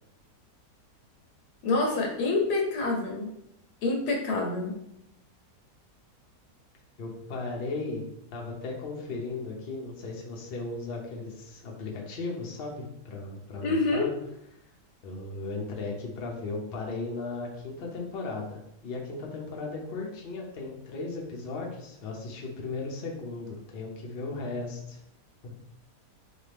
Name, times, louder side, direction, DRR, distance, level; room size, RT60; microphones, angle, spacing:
voice 1, 1.6-3.3 3.8-4.7 13.6-14.1, left 3 dB, 80° left, 1 dB, 1.3 m, -27 dB
voice 2, 7.0-8.0 8.3-14.1 15.0-25.0 25.4-25.5, left 3 dB, 50° left, -1 dB, 0.8 m, -36 dB
4.1 x 2.7 x 3.4 m, 0.81 s
omnidirectional pair, 1.7 m